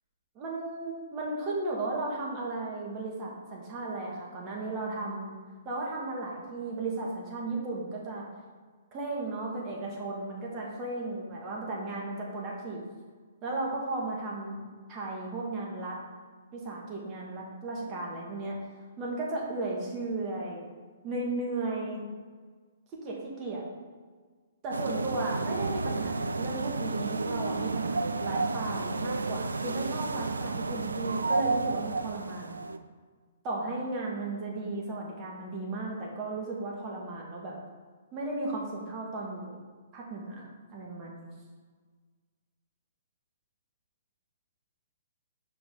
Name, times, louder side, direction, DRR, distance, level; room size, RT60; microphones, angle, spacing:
voice 1, 0.3-5.3 5.6-8.2 8.9-12.8 13.4-16.0 16.5-18.6 19.0-20.7 21.0-22.0 22.9-23.6 24.6-32.7 33.4-37.5 38.1-39.5 39.9-40.4 40.7-41.3, right 2 dB, 30° right, -2 dB, 1.6 m, -35 dB
sound 1, 24.7-32.8, right 3 dB, 75° right, 0.3 m, -31 dB
5.9 x 5.0 x 3.6 m, 1.5 s
figure-of-eight pair, 120°, 0 cm